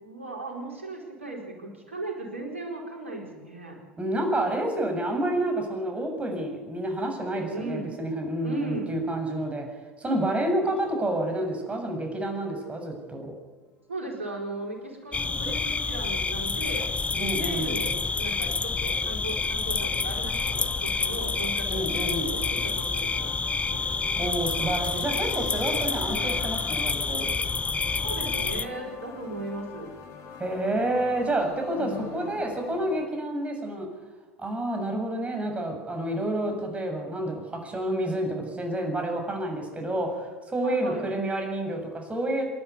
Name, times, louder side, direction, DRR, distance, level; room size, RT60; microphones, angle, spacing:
voice 1, 0.0-3.8 7.5-7.9 8.4-8.9 13.9-24.0 26.0-26.4 28.0-29.9 31.7-32.4 40.6-41.1, right 2 dB, 85° right, 1 dB, 4.6 m, -37 dB
voice 2, 4.0-9.7 10.0-13.3 17.2-17.7 21.7-22.3 24.2-27.3 30.4-33.9 34.4-42.4, right 1 dB, 20° right, 3 dB, 7.1 m, -29 dB
sound 1, 13.8-33.1, left 5 dB, 50° left, 4.4 m, -45 dB
sound 2, 15.1-28.7, left 4 dB, 20° left, 1.1 m, -28 dB
28.0 x 11.0 x 9.6 m, 1.3 s
figure-of-eight pair, 75°, 7 cm